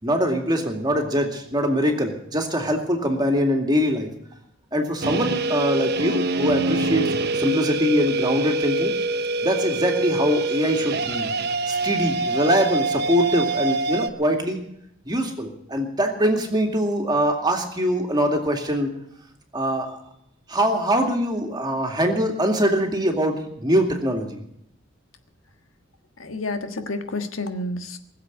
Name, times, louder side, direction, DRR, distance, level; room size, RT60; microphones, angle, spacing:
voice 1, 0.0-4.1 4.7-8.9 9.4-11.3 11.7-14.6 15.1-18.9 19.5-20.0 20.5-24.4, equal, 20° right, 3 dB, 2.3 m, -23 dB
sound 1, 5.0-14.1, right 2 dB, 55° right, 0.9 m, -25 dB
voice 2, 26.2-28.0, left 2 dB, 85° left, 7 dB, 1.5 m, -29 dB
20.0 x 7.6 x 9.3 m, 0.72 s
head